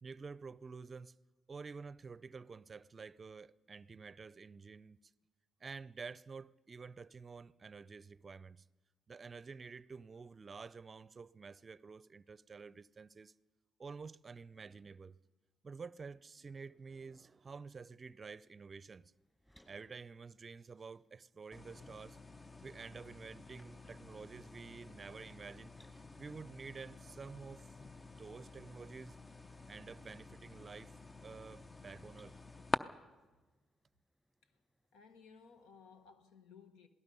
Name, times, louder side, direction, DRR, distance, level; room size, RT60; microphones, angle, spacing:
voice 1, 0.0-1.1 1.5-5.0 5.6-8.7 9.1-13.3 13.8-15.2 15.6-19.1 19.7-22.2 22.6-27.7 28.0-29.2 29.7-31.0 31.2-32.4, right 5 dB, 40° right, 0.5 m, -50 dB
sound 1, 18.0-36.1, equal, 10° left, 5.2 m, -75 dB
sound 2, 21.5-32.8, left 2 dB, 25° left, 0.7 m, -47 dB
voice 2, 34.9-36.9, left 6 dB, 90° left, 1.4 m, -59 dB
27.0 x 17.5 x 5.5 m
supercardioid pair, 65°, 0 cm